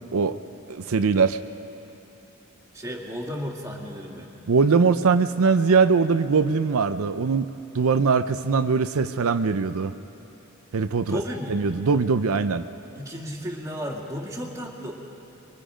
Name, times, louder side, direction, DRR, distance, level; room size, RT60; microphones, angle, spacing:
voice 1, 0.7-1.4 4.5-7.5 7.7-9.9 10.7-11.2 11.5-12.7, right 5 dB, 80° right, 10 dB, 0.5 m, -21 dB
voice 2, 2.7-4.3 11.0-11.6 13.0-14.9, equal, 15° right, -1 dB, 2.2 m, -33 dB
25.5 x 23.0 x 5.1 m, 2.8 s
head